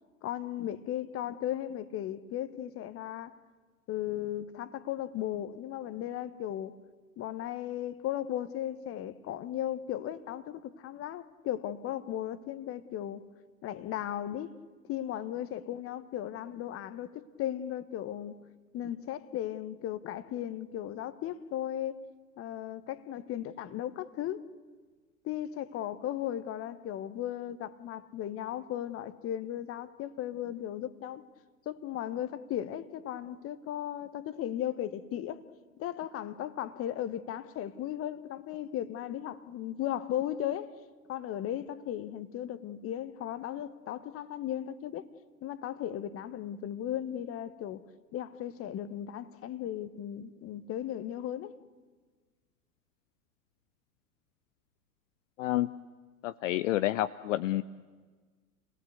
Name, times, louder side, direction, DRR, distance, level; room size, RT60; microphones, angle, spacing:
voice 1, 0.2-3.3 3.9-6.7 7.2-13.3 13.6-14.6 14.9-18.4 18.7-22.0 22.4-24.4 25.2-31.2 31.6-35.4 35.8-40.7 41.1-45.1 45.4-47.8 48.1-51.5, left 11 dB, 30° left, 1.1 m, -36 dB
voice 2, 55.4-55.7 56.2-57.6, left 15 dB, 55° left, 0.6 m, -29 dB
27.5 x 18.5 x 8.0 m
figure-of-eight pair, 95°, 47 cm